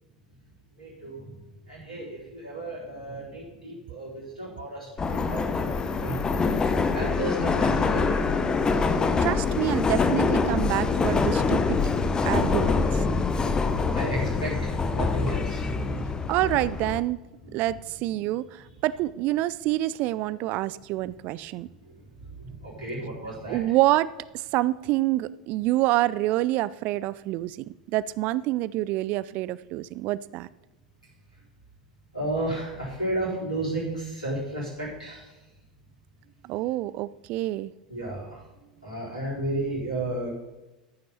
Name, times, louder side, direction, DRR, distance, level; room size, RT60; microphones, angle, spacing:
voice 1, 0.8-1.3 1.7-4.9 5.3-6.3 6.9-8.2 13.2-16.3 17.4-17.5 22.4-23.6 32.1-35.3 37.9-38.4 38.8-40.3, right 1 dB, 90° left, -7 dB, 4.2 m, -33 dB
Subway metro underground, 5.0-17.0, left 4 dB, 20° left, 0.9 m, -25 dB
voice 2, 9.2-11.8 12.2-13.0 16.3-17.2 17.5-21.7 23.5-27.6 27.9-30.5 36.4-37.7, right 16 dB, 45° right, 18 dB, 0.3 m, -27 dB
14.0 x 6.0 x 5.6 m, 1.1 s
figure-of-eight pair, 80°, 4 cm